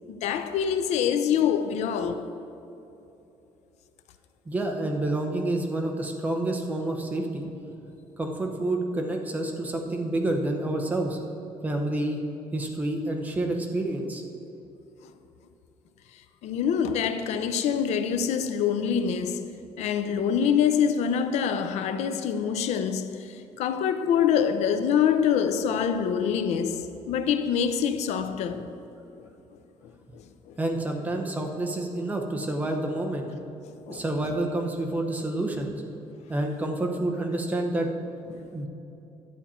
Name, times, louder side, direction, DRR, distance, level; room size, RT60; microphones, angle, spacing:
voice 1, 0.1-2.3 15.0-15.1 16.1-19.5 19.8-28.7 29.2-29.3 30.1-30.6 33.6-34.3 38.3-38.5, left 7 dB, 80° left, 0.6 m, -26 dB
voice 2, 4.5-7.5 8.2-11.2 11.6-12.2 12.5-14.2 30.6-33.3 33.9-35.8 36.3-37.9 38.5-38.7, right 2 dB, 15° right, 0.8 m, -28 dB
11.0 x 8.6 x 4.3 m
cardioid pair, 175°, 11 cm